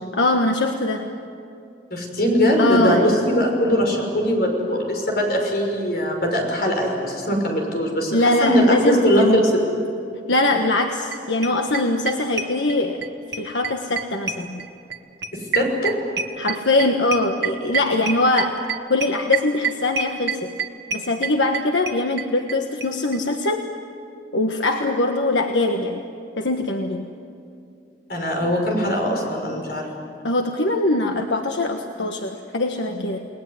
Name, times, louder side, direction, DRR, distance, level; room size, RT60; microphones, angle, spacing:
voice 1, 0.1-1.1 2.6-3.1 8.1-9.4 10.3-13.0 13.3-14.6 16.4-18.6 18.9-20.5 20.9-23.6 24.3-26.0 26.4-27.1 30.2-33.3, left 2 dB, 85° left, 4 dB, 1.5 m, -22 dB
voice 2, 1.9-9.5 15.3-15.9 28.1-29.9, equal, 55° left, 1 dB, 6.1 m, -21 dB
sound 1, 10.8-10.9 11.1-11.2 11.4-13.1 13.3-22.6 22.8-22.9 23.1-23.2 23.4-23.5, right 6 dB, 75° right, 1.7 m, -26 dB
30.0 x 20.0 x 9.7 m, 2.5 s
head